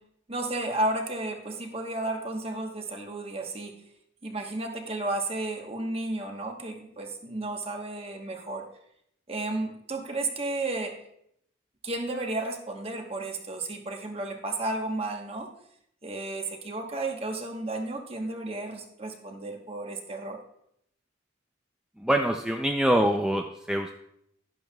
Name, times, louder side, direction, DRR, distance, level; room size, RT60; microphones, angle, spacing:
voice 1, 0.3-3.7 4.2-8.6 9.3-10.9 11.8-15.5 16.0-20.4, right 2 dB, 30° right, 3 dB, 1.1 m, -33 dB
voice 2, 22.0-23.9, right 1 dB, 5° right, 3 dB, 0.4 m, -25 dB
11.5 x 10.5 x 2.3 m, 0.74 s
head